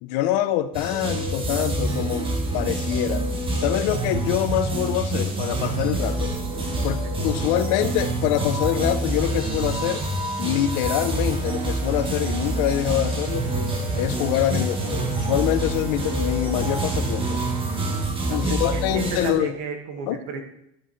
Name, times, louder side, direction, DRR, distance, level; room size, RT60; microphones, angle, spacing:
voice 1, 0.0-3.2 3.6-6.3 6.8-10.0 10.4-13.5 14.0-17.4 18.3-19.5 20.1-20.2, left 12 dB, 65° left, 12 dB, 0.7 m, -25 dB
sound 1, 0.7-19.3, right 2 dB, 15° right, 1.1 m, -26 dB
sound 2, 9.0-18.0, right 2 dB, 45° right, 3.7 m, -42 dB
voice 2, 18.3-20.4, right 5 dB, 85° right, 4 dB, 1.8 m, -34 dB
12.0 x 8.0 x 3.2 m, 0.77 s
cardioid pair, 175°, 32 cm